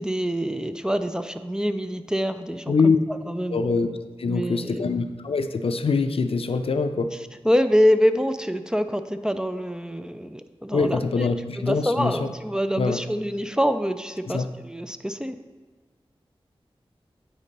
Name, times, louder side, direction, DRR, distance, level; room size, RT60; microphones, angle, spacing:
voice 1, 0.0-2.9 3.3-3.6 4.2-4.8 7.4-11.3 11.7-15.4, equal, 5° right, 8 dB, 0.3 m, -25 dB
voice 2, 2.7-3.0 3.5-3.9 4.2-7.1 10.7-12.3 12.8-13.0 14.3-14.5, left 4 dB, 65° left, 9 dB, 0.4 m, -24 dB
8.3 x 4.1 x 5.2 m, 1.4 s
wide cardioid pair, 80°, 10 cm